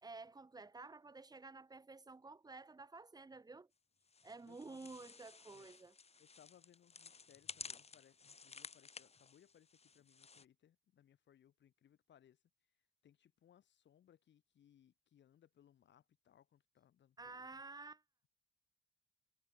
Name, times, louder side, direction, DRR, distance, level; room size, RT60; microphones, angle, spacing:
voice 1, 0.0-3.7 4.2-6.0 17.2-18.0, right 3 dB, 20° right, 1.4 m, -52 dB
sound 1, 4.1-10.5, left 5 dB, 30° left, 2.3 m, -54 dB
voice 2, 4.5-5.0 5.5-5.7 6.2-12.4 13.0-17.5, left 10 dB, 65° left, 4.6 m, -68 dB
cardioid pair, 90°, 20 cm